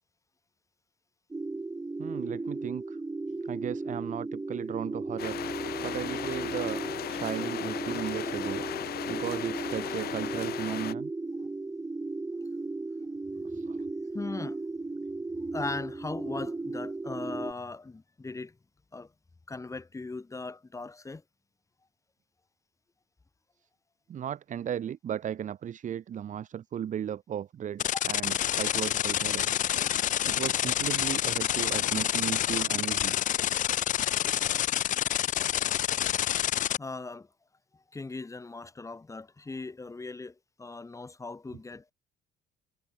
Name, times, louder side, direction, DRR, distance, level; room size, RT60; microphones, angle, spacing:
sound 1, 1.3-17.5, right 3 dB, 15° right, 4.8 m, -36 dB
voice 1, 2.0-3.0 3.4-5.4 5.8-6.8 7.1-8.6 9.1-11.1 13.5-13.8 24.1-29.5 30.3-33.1, right 9 dB, 50° right, 1.7 m, -35 dB
sound 2, 5.2-10.9, left 13 dB, 65° left, 6.3 m, -36 dB
voice 2, 7.1-7.5 8.9-9.1 11.3-11.5 13.3-13.5 14.1-14.6 15.5-18.6 18.9-19.1 19.5-21.2 27.9-28.0 36.8-37.3 37.7-41.9, left 3 dB, 20° left, 4.9 m, -39 dB
sound 3, 27.8-36.8, left 11 dB, 50° left, 0.6 m, -28 dB
cardioid pair, 110°, 17 cm